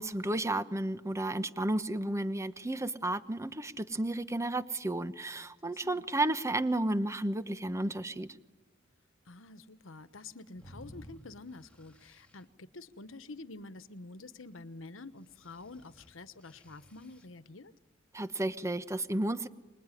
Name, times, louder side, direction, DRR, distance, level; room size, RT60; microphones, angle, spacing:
voice 1, 0.0-8.4 18.1-19.5, right 1 dB, 15° right, 13 dB, 1.0 m, -32 dB
voice 2, 5.7-6.0 9.2-17.7, left 3 dB, 85° left, 14 dB, 1.2 m, -48 dB
sound 1, 10.5-12.4 15.2-17.3, equal, 5° left, 2.5 m, -55 dB
25.5 x 21.0 x 10.0 m, 1.3 s
head